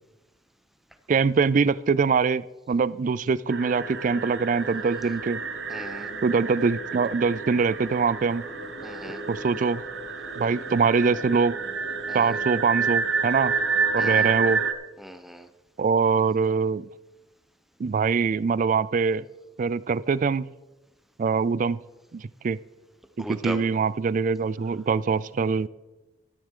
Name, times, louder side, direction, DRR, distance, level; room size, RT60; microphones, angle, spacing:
voice 1, 1.1-2.4 2.7-5.4 6.2-8.4 9.3-9.8 10.4-11.5 12.1-13.5 13.9-14.6 15.8-16.9 17.8-19.3 19.6-20.5 21.2-21.8 22.1-22.6 23.2-25.7, right 5 dB, 45° right, 19 dB, 0.3 m, -23 dB
sound 1, 3.5-14.7, right 5 dB, 75° right, 0.9 m, -29 dB
sound 2, 3.7-14.7, left 1 dB, 80° left, 3.2 m, -46 dB
voice 2, 5.7-6.1 8.8-9.2 12.1-12.3 14.0-14.3 15.0-15.5 23.2-23.6, equal, ahead, 8 dB, 0.8 m, -37 dB
13.5 x 12.0 x 3.8 m, 1.1 s
head